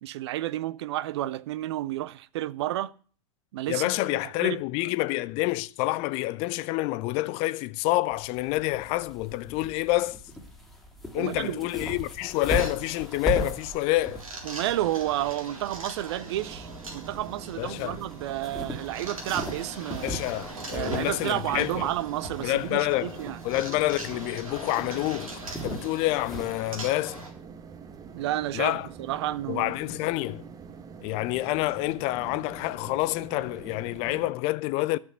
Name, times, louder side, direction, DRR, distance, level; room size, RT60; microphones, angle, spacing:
voice 1, 0.0-2.9 3.5-4.6 11.2-11.6 14.4-20.2 20.7-23.4 28.1-29.8, right 14 dB, 50° right, 0.6 m, -31 dB
voice 2, 3.7-10.2 11.1-14.2 17.6-18.0 20.0-21.9 22.4-23.2 23.4-25.3 25.6-27.2 28.5-28.9 29.5-30.4 31.0-35.0, left 18 dB, 35° left, 0.5 m, -28 dB
sound 1, 8.1-26.6, equal, ahead, 2.5 m, -39 dB
sound 2, 12.3-27.3, right 2 dB, 70° right, 3.7 m, -42 dB
sound 3, 16.2-34.3, right 6 dB, 20° right, 1.1 m, -45 dB
12.0 x 6.1 x 8.4 m
figure-of-eight pair, 95°, 18 cm